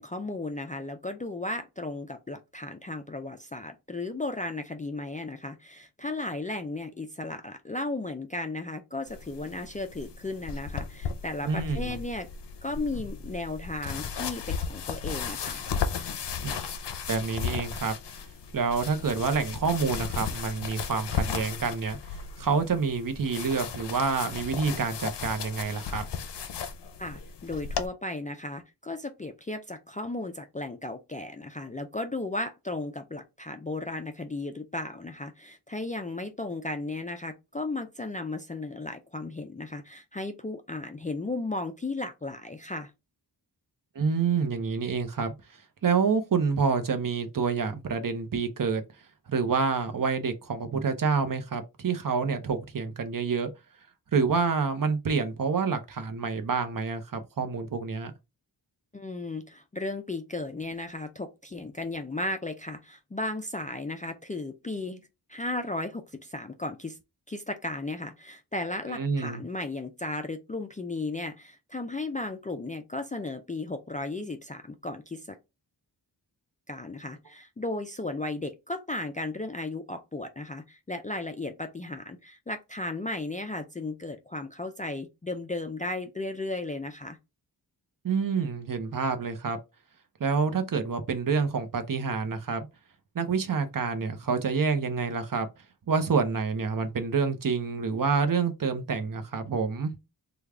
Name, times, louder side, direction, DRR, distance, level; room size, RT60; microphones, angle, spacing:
voice 1, 0.0-12.3 12.6-15.6 27.0-42.9 58.9-65.0 65.3-67.0 67.3-75.4 76.7-87.2, left 2 dB, 20° left, 0.3 m, -35 dB
sound 1, 9.1-27.9, left 6 dB, 75° left, 0.6 m, -35 dB
voice 2, 11.4-11.9 16.4-16.6 17.1-17.9 18.5-22.0 22.4-26.0 44.0-45.3 45.8-48.8 49.3-53.5 54.1-58.1 68.9-69.4 88.0-89.6 90.2-92.7 93.1-95.5 95.9-99.9, right 5 dB, 50° right, 0.7 m, -27 dB
3.3 x 2.3 x 3.5 m
wide cardioid pair, 120°, 41 cm